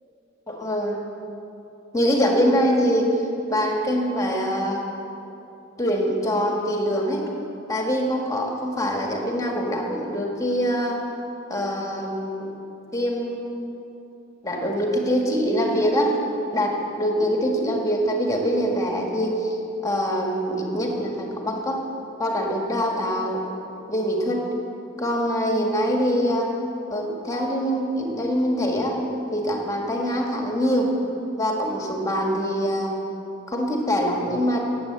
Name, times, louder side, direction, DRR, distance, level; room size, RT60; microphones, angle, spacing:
voice 1, 0.5-1.0 1.9-3.1 3.5-4.8 5.8-7.3 7.7-11.0 11.5-12.5 12.9-13.5 14.4-16.1 16.5-19.6 19.8-21.8 22.2-23.4 23.9-24.4 25.0-26.5 26.9-29.0 29.3-30.9 31.4-32.9 33.5-34.6, equal, 15° left, 0 dB, 1.7 m, -24 dB
17.0 x 7.7 x 8.0 m, 2.9 s
head